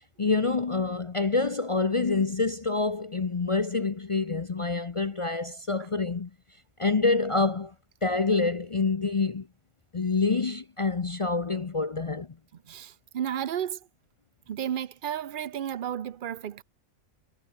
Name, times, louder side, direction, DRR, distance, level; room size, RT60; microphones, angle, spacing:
voice 1, 0.0-6.3 6.8-7.7 8.0-9.5 9.9-12.3, left 3 dB, 35° left, 0.5 m, -27 dB
voice 2, 12.7-13.8 14.5-16.6, right 9 dB, 50° right, 0.7 m, -32 dB
omnidirectional pair, 1.4 m